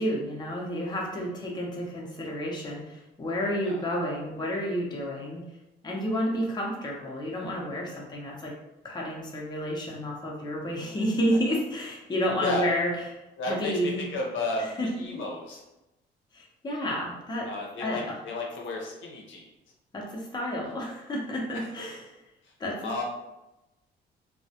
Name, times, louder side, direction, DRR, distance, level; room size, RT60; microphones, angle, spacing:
voice 1, 0.0-5.4 5.8-8.5 8.8-13.0 13.4-14.1 14.6-15.2 16.3-17.5 17.8-18.2 19.9-22.1 22.6-23.0, equal, 20° left, -2 dB, 0.6 m, -30 dB
voice 2, 13.4-14.7 15.0-15.6 17.5-19.5 21.5-21.7 22.8-23.0, left 2 dB, 75° left, -1 dB, 0.6 m, -33 dB
2.2 x 2.1 x 2.7 m, 0.95 s
cardioid pair, 90°, 20 cm